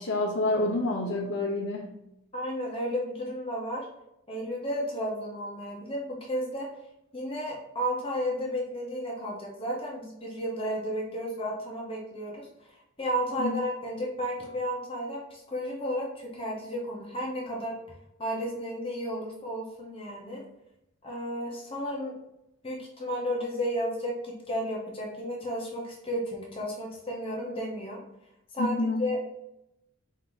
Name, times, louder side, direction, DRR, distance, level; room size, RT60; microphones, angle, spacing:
voice 1, 0.0-1.9 13.4-13.5 28.6-29.0, left 2 dB, 65° left, -3 dB, 0.7 m, -28 dB
voice 2, 2.3-3.9 4.3-6.7 7.1-17.8 18.2-20.4 21.0-22.1 22.6-28.0 28.5-29.2, equal, 25° left, -3 dB, 0.8 m, -33 dB
4.5 x 2.8 x 3.8 m, 0.85 s
head